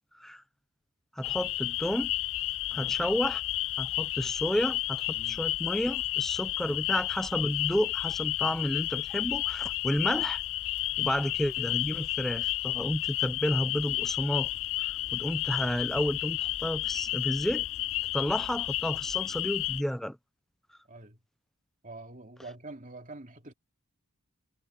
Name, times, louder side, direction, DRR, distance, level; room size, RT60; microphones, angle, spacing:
sound 1, 1.2-19.8, left 17 dB, 60° left, 0.4 m, -32 dB
voice 1, 1.2-2.1 2.7-3.4 3.8-10.4 11.0-14.5 14.8-17.6 18.1-20.2, equal, ahead, 0.6 m, -31 dB
voice 2, 2.7-3.0 5.1-5.4 20.9-21.2 21.8-23.5, right 2 dB, 35° right, 2.7 m, -46 dB
head